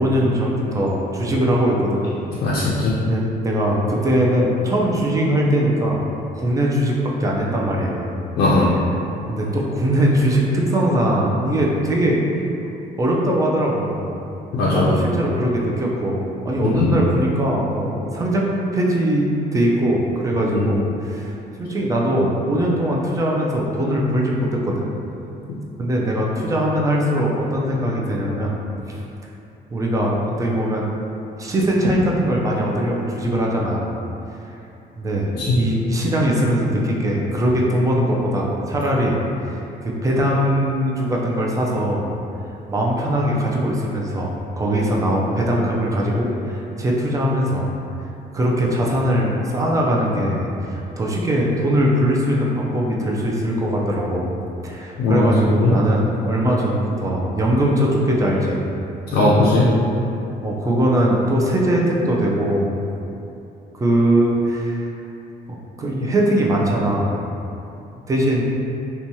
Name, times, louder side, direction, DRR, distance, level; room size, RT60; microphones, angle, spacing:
voice 1, 0.0-2.0 3.0-8.2 9.3-12.2 13.0-14.1 14.6-24.9 25.8-28.5 28.9-29.0 29.7-30.9 31.4-33.9 35.0-39.6 39.8-42.1 42.7-44.3 44.6-47.7 48.3-54.3 54.6-58.6 60.4-62.9 63.7-64.9 65.5-67.2 68.1-68.4, right 1 dB, 20° right, -3 dB, 0.4 m, -21 dB
voice 2, 2.4-2.9 8.4-8.7 14.5-14.9 16.7-16.9 20.5-20.6 35.3-35.6 55.0-55.3 55.6-55.7 59.1-59.6, left 2 dB, 70° left, -7 dB, 0.5 m, -18 dB
2.8 x 2.2 x 2.7 m, 2.8 s
cardioid pair, 110°, 17 cm